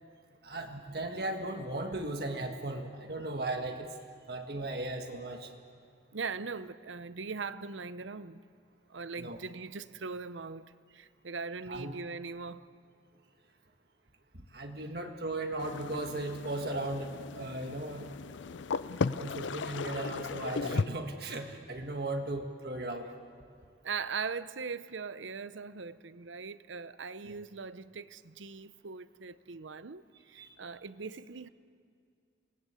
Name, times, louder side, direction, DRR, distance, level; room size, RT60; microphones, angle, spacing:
voice 1, 0.4-3.9 4.3-5.5 9.2-9.4 11.7-11.9 14.5-18.1 19.1-23.1 27.2-27.3 30.3-30.5, right 2 dB, 55° right, 1.7 m, -37 dB
voice 2, 6.1-8.4 8.9-12.7 23.8-31.5, right 5 dB, 90° right, 0.7 m, -40 dB
sound 1, 15.6-20.8, left 4 dB, 80° left, 0.5 m, -36 dB
27.5 x 20.0 x 8.2 m
head